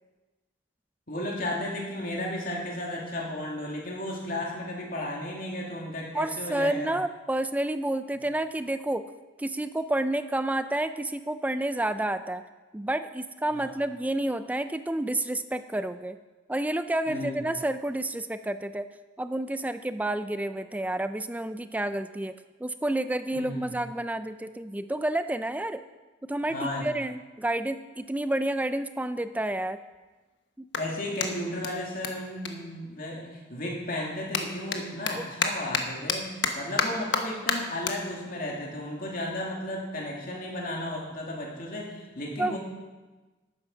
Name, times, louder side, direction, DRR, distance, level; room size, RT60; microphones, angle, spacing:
voice 1, 1.1-6.9 13.5-13.7 17.1-17.5 23.3-23.8 26.5-26.9 30.8-42.6, left 1 dB, 50° left, -2 dB, 2.6 m, -34 dB
voice 2, 6.1-9.0 9.4-12.4 12.7-16.2 16.5-18.9 19.2-25.8 26.3-29.8 35.2-35.3 42.4-42.6, right 1 dB, 10° right, 11 dB, 0.4 m, -30 dB
Clapping, 29.4-33.4 33.7-40.4, left 5 dB, 65° left, 1.2 m, -33 dB
11.0 x 9.3 x 6.1 m, 1.2 s
head